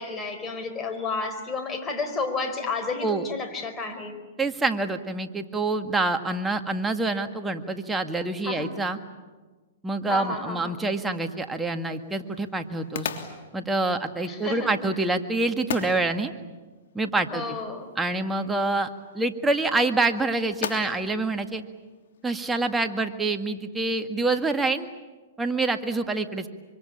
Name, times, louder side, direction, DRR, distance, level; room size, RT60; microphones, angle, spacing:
voice 1, 0.0-4.2 8.4-8.7 10.1-10.8 14.2-14.8 17.2-17.9, left 3 dB, 20° left, 5 dB, 4.6 m, -31 dB
voice 2, 4.4-9.0 9.8-13.1 13.5-16.3 16.9-17.6 18.0-18.9 19.1-21.6 22.2-24.9 25.4-26.5, right 2 dB, 10° right, 6 dB, 1.8 m, -26 dB
sound 1, 10.8-22.5, left 8 dB, 70° left, 3.1 m, -41 dB
25.5 x 25.5 x 8.8 m, 1.3 s
hypercardioid pair, 125°, 0 cm